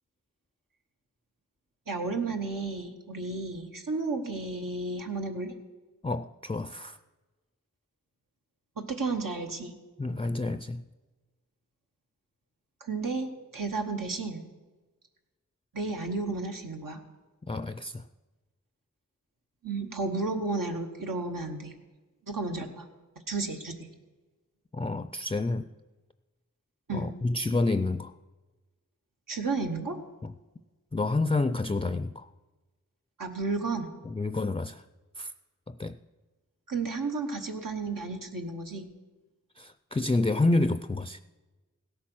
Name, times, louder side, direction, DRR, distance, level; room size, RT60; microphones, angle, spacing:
voice 1, 1.9-5.5 8.8-9.7 12.8-14.4 15.7-17.0 19.6-21.7 22.3-22.9 23.3-23.7 26.9-27.1 29.3-30.0 33.2-33.9 36.7-38.9, right 3 dB, 90° right, 2 dB, 1.3 m, -32 dB
voice 2, 6.0-7.0 10.0-10.8 17.5-18.0 24.7-25.7 26.9-28.1 30.2-30.3 30.9-32.3 34.1-34.8 35.2-35.3 35.7-36.0 39.6-41.2, left 2 dB, 20° left, 12 dB, 0.4 m, -29 dB
16.5 x 8.5 x 6.2 m, 1.2 s
wide cardioid pair, 50°, 32 cm